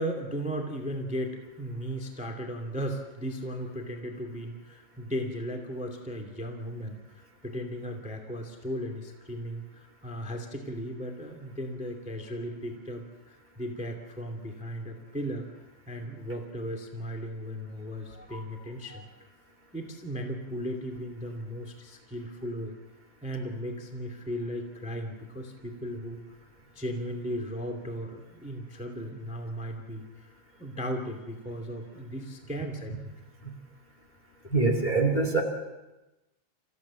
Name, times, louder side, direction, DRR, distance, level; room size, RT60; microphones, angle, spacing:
voice 1, 0.0-15.4 15.9-19.1 19.7-22.7 23.2-26.2 26.7-30.3 30.6-33.1, equal, 10° right, 3 dB, 0.4 m, -36 dB
voice 2, 34.5-35.4, right 3 dB, 25° left, 2 dB, 1.0 m, -24 dB
28.5 x 15.5 x 7.3 m, 1.0 s
omnidirectional pair, 5.2 m